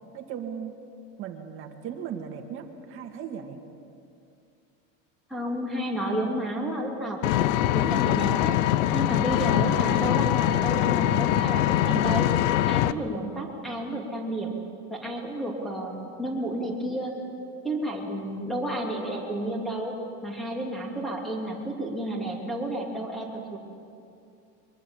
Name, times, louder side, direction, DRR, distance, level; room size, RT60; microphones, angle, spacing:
voice 1, 0.1-0.7 1.2-3.6, right 8 dB, 35° right, 4 dB, 2.0 m, -37 dB
voice 2, 5.3-7.4 7.7-8.5 8.9-12.3 12.7-14.5 14.9-17.1 17.6-20.0 20.2-23.6, right 1 dB, ahead, -1 dB, 3.0 m, -31 dB
Vehicle, 7.2-12.9, left 13 dB, 80° left, 0.8 m, -23 dB
23.5 x 23.0 x 7.2 m, 2.5 s
cardioid pair, 175°, 38 cm